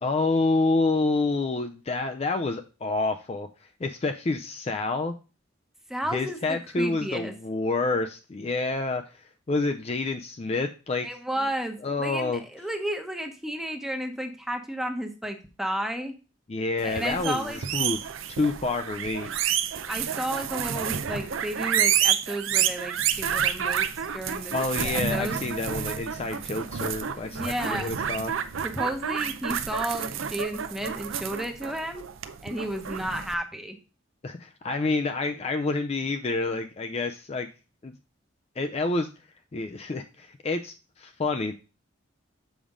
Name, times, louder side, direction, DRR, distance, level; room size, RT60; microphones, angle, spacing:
voice 1, 0.0-3.5 3.8-5.1 6.1-11.1 11.8-12.4 16.5-19.3 24.5-28.3 34.2-37.5 37.8-37.9 38.6-39.1 39.5-41.5, left 3 dB, 30° left, 6 dB, 0.4 m, -28 dB
voice 2, 5.9-7.3 11.0-16.1 16.8-17.6 19.9-24.5 24.8-25.4 27.3-27.9 28.6-32.1 32.4-33.8, right 1 dB, ahead, 5 dB, 0.8 m, -32 dB
sound 1, 16.8-33.3, right 8 dB, 80° right, 0.6 m, -29 dB
7.1 x 5.0 x 3.6 m, 0.32 s
head